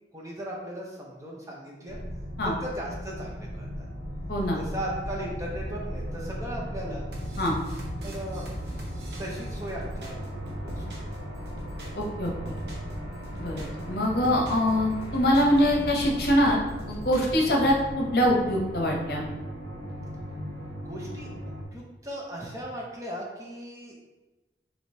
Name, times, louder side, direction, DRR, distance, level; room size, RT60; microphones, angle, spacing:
voice 1, 0.1-2.0 2.4-3.9 4.6-7.1 8.0-8.5 9.2-10.2 10.6-11.4 20.8-21.3 21.7-23.9, right 1 dB, 15° right, -3 dB, 0.6 m, -37 dB
sound 1, 1.9-21.6, equal, 90° right, 1.1 m, -37 dB
sound 2, 7.1-11.2 11.5-12.9 13.2-14.7 15.0-16.5 16.8-17.8, right 1 dB, 70° right, 0.8 m, -41 dB
voice 2, 11.9-12.3 13.4-16.6 16.9-19.2, equal, 60° left, -1 dB, 0.8 m, -24 dB
5.0 x 3.0 x 2.7 m, 1.1 s
head